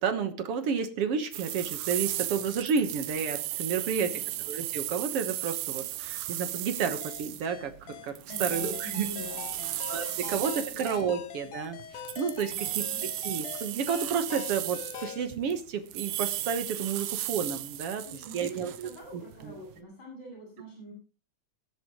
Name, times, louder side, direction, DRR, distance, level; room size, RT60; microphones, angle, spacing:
voice 1, 0.0-4.1 4.5-7.7 8.0-9.1 9.9-12.8 13.2-18.0 18.3-19.5, right 6 dB, 60° right, 8 dB, 1.8 m, -31 dB
sound 1, 1.3-11.0 11.8-15.6 15.9-19.7, right 14 dB, 85° right, 2.4 m, -35 dB
voice 2, 3.8-4.5 8.3-9.8 10.1-10.3 10.7-10.8 12.4-13.1 17.9-20.9, equal, 30° left, -3 dB, 7.5 m, -46 dB
sound 2, 7.0-15.3, left 10 dB, 75° left, 2.5 m, -43 dB
19.5 x 10.5 x 3.1 m, 0.34 s
omnidirectional pair, 3.7 m